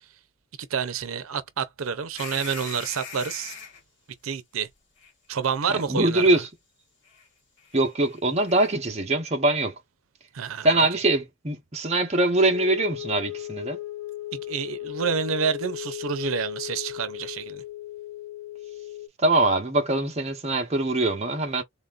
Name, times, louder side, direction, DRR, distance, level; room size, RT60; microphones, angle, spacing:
voice 1, 0.7-3.5 4.2-4.7 5.3-6.4 10.3-10.9 14.3-17.6, right 6 dB, 85° right, 0.6 m, -29 dB
sound 1, 2.2-3.8 5.0-5.1 7.0-7.3 7.6-8.7, left 5 dB, 60° left, 1.8 m, -41 dB
voice 2, 5.7-6.5 7.7-9.7 10.6-13.8 19.2-21.6, right 2 dB, 30° right, 0.9 m, -23 dB
sound 2, 12.5-19.1, left 15 dB, 75° left, 0.8 m, -36 dB
4.0 x 3.4 x 2.4 m
head